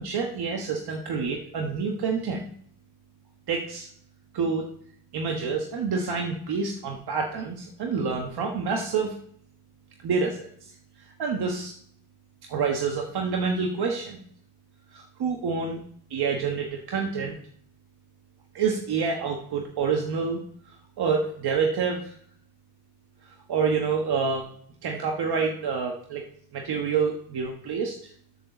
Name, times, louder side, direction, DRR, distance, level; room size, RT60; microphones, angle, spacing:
voice 1, 0.0-2.4 3.5-3.9 4.3-4.7 5.1-9.2 10.0-10.7 11.0-11.7 12.5-14.2 14.9-15.8 16.1-17.4 18.5-22.1 23.5-24.5 24.8-26.2 26.5-28.1, right 5 dB, 75° right, 1 dB, 1.4 m, -28 dB
7.4 x 4.5 x 7.0 m, 0.62 s
cardioid pair, 95°, 39 cm